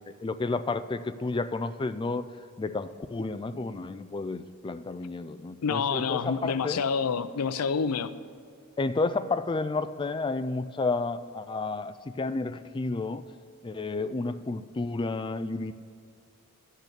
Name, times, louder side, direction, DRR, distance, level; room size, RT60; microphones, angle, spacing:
voice 1, 0.1-2.2 2.6-6.8 8.8-13.2 13.6-15.7, left 3 dB, 20° left, 0.3 m, -31 dB
voice 2, 5.6-8.2, left 5 dB, 85° left, 0.5 m, -28 dB
12.0 x 6.6 x 8.1 m
head